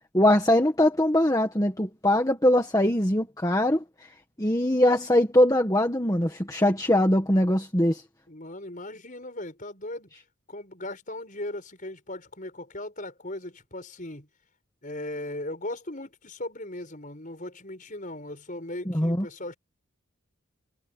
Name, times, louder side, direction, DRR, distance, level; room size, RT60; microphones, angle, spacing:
voice 1, 0.1-4.1 4.4-8.0 18.9-19.2, left 1 dB, 15° left, 1.6 m, -22 dB
voice 2, 8.3-10.1 10.5-14.3 14.8-19.6, left 1 dB, 35° left, 6.1 m, -38 dB
head